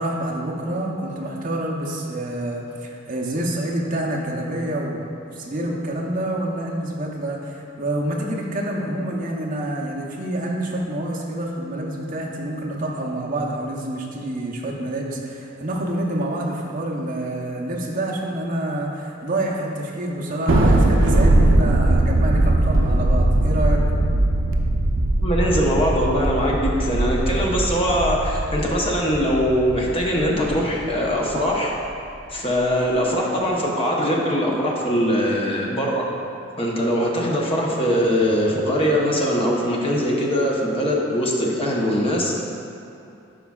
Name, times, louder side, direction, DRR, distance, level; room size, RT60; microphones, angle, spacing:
voice 1, 0.0-23.8, right 1 dB, 40° right, -2 dB, 0.8 m, -27 dB
Thunder, 20.5-31.1, right 1 dB, 70° right, 0.5 m, -20 dB
voice 2, 25.2-31.7 32.3-36.1 36.6-42.3, equal, 30° left, -3 dB, 0.9 m, -21 dB
11.0 x 4.9 x 2.4 m, 2.7 s
head